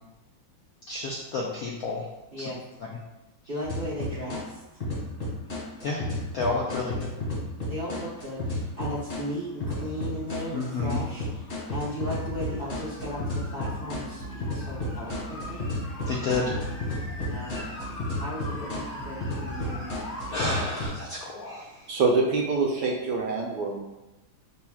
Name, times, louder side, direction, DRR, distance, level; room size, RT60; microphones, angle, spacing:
voice 1, 0.9-2.0 2.4-2.5 5.8-6.0 6.3-6.9 10.5-11.0 16.1-16.6 20.3-22.0, left 3 dB, 75° left, -3 dB, 0.8 m, -30 dB
voice 2, 3.5-4.6 6.5-7.1 7.7-15.7 17.2-17.5 18.2-19.9, equal, 45° right, -7 dB, 0.8 m, -36 dB
sound 1, 3.6-4.4 4.8-9.2 9.6-20.9, left 1 dB, 40° left, 1.8 m, -32 dB
voice 3, 21.9-23.8, right 3 dB, 75° right, -1 dB, 1.1 m, -25 dB
5.7 x 3.3 x 2.3 m, 1.0 s
omnidirectional pair, 2.1 m